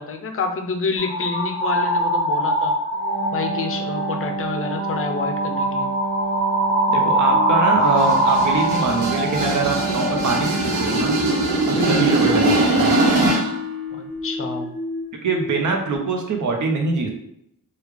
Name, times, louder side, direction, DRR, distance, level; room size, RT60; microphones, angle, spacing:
voice 1, 0.0-2.7 3.3-5.9 11.8-12.2 13.9-14.7, left 4 dB, 40° left, 6 dB, 0.5 m, -28 dB
sound 1, 1.0-3.6 3.9-4.2 4.7-15.0 15.3-16.0, right 1 dB, 15° left, 1.3 m, -24 dB
Wind instrument woodwind instrument, 2.9-10.9, right 3 dB, 15° right, 0.8 m, -28 dB
voice 2, 6.9-11.1 11.7-13.0 15.2-17.1, right 4 dB, 60° right, 2 dB, 0.7 m, -23 dB
sound 2, 7.8-13.6, right 2 dB, 80° right, 1.0 m, -21 dB
3.1 x 2.3 x 3.5 m, 0.73 s
wide cardioid pair, 130°, 33 cm